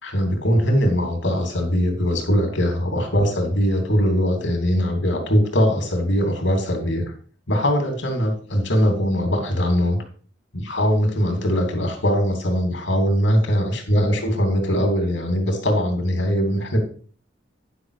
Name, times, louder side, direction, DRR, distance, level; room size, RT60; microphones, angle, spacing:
voice 1, 0.0-7.0 7.5-10.0 10.5-16.8, equal, 80° left, 3 dB, 2.8 m, -21 dB
10.0 x 6.0 x 4.8 m, 0.44 s
head